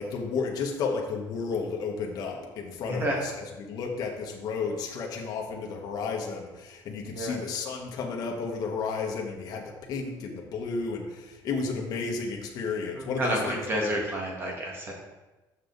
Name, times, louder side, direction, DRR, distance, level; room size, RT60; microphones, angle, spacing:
voice 1, 0.0-13.9, left 4 dB, 50° left, 0 dB, 1.1 m, -32 dB
voice 2, 2.9-3.2 7.1-7.4 12.9-14.9, right 1 dB, 25° right, -1 dB, 1.8 m, -30 dB
6.9 x 6.6 x 3.9 m, 1.1 s
cardioid pair, 155°, 8 cm